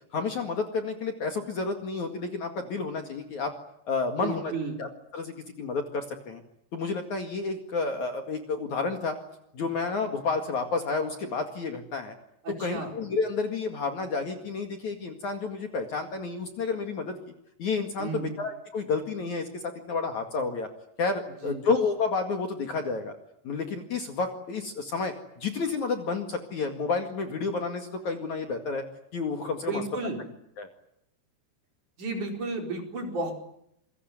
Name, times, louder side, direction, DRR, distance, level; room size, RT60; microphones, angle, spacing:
voice 1, 0.1-3.5 3.9-4.5 4.8-4.9 5.1-6.4 6.7-9.2 9.5-12.1 12.6-17.2 17.6-20.7 21.0-23.1 23.4-28.8 29.1-29.8 30.6-30.7, left 4 dB, 50° left, 5 dB, 2.9 m, -30 dB
voice 2, 4.2-4.8 12.4-12.9 18.0-18.4 21.4-21.7 29.6-30.2 32.0-33.3, right 3 dB, 45° right, 3 dB, 5.7 m, -33 dB
27.5 x 23.0 x 9.4 m, 0.76 s
omnidirectional pair, 5.0 m